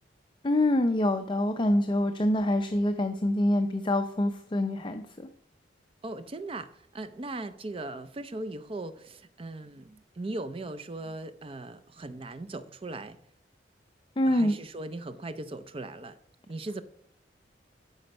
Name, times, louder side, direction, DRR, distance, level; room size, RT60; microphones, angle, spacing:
voice 1, 0.4-5.3 14.2-14.6, left 1 dB, 25° left, 6 dB, 0.5 m, -26 dB
voice 2, 6.0-13.2 14.3-16.2 16.5-16.8, right 2 dB, 30° right, 12 dB, 0.5 m, -38 dB
12.0 x 5.2 x 5.3 m, 0.69 s
head